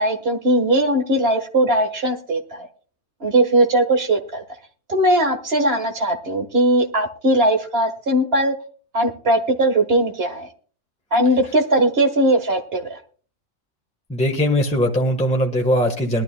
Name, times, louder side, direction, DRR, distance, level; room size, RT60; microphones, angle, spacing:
voice 1, 0.0-2.7 3.2-4.4 4.9-8.5 8.9-10.5 11.1-13.0, right 1 dB, 45° right, 5 dB, 1.6 m, -19 dB
voice 2, 14.1-16.2, equal, 5° left, 1 dB, 1.3 m, -20 dB
21.0 x 12.0 x 2.2 m, 0.42 s
omnidirectional pair, 1.4 m